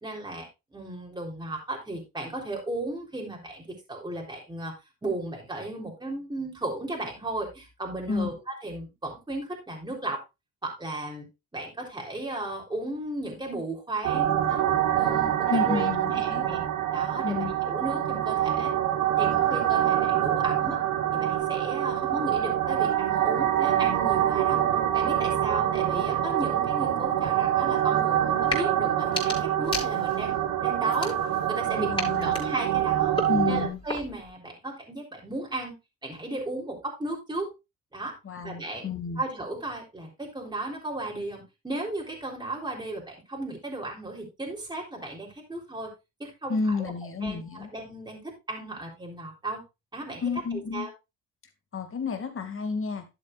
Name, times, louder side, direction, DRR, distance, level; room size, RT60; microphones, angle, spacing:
voice 1, 0.0-4.7 5.0-10.2 10.6-11.3 11.5-14.6 14.9-16.6 16.9-18.7 19.2-20.8 21.1-24.6 24.9-30.3 30.6-31.2 31.5-33.1 33.5-35.7 36.0-37.5 37.9-38.2 38.4-38.9 39.2-45.9 46.2-46.9 47.2-49.6 49.9-50.9, right 2 dB, 15° right, 3.7 m, -35 dB
sound 1, 14.0-33.7, right 11 dB, 90° right, 1.4 m, -25 dB
voice 2, 15.5-16.5 17.2-17.5 31.8-32.3 33.3-33.8 38.2-39.2 46.5-47.7 50.2-50.9 51.7-53.0, left 4 dB, 45° left, 2.4 m, -30 dB
sound 2, 28.4-28.7 29.0-30.3 30.9-31.6 32.0-34.3, left 2 dB, 15° left, 5.3 m, -35 dB
12.0 x 7.9 x 2.5 m
cardioid pair, 90°, 30 cm